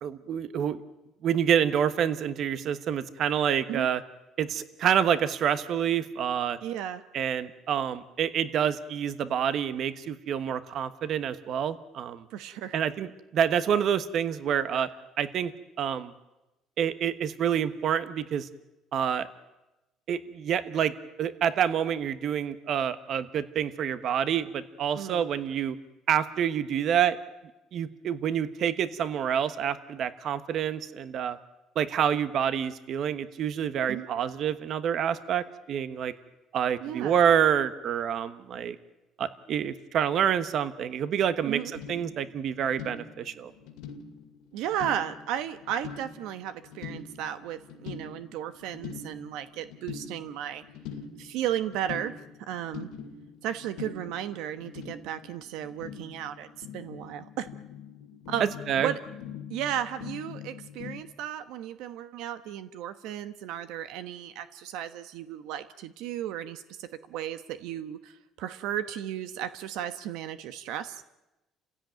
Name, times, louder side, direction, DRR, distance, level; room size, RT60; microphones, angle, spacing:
voice 1, 0.0-0.8 1.2-4.0 4.4-6.6 7.1-12.3 12.7-14.9 15.2-15.5 15.8-16.1 16.8-18.5 18.9-19.3 20.1-20.9 21.2-25.7 26.1-27.2 27.7-31.4 31.7-36.1 36.5-38.8 39.2-41.6 41.9-43.5 58.7-58.9, right 8 dB, 50° right, 13 dB, 1.2 m, -27 dB
voice 2, 6.6-7.0 12.3-12.8 24.9-25.2 33.9-34.1 36.8-37.2 41.5-41.7 44.5-50.6 51.2-52.2 52.5-52.9 53.4-57.5 58.3-59.0 59.5-71.0, right 10 dB, 85° right, 11 dB, 1.1 m, -34 dB
sound 1, 41.5-61.0, left 7 dB, 90° left, 2.3 m, -44 dB
29.5 x 16.5 x 9.2 m, 1.0 s
cardioid pair, 135°, 0 cm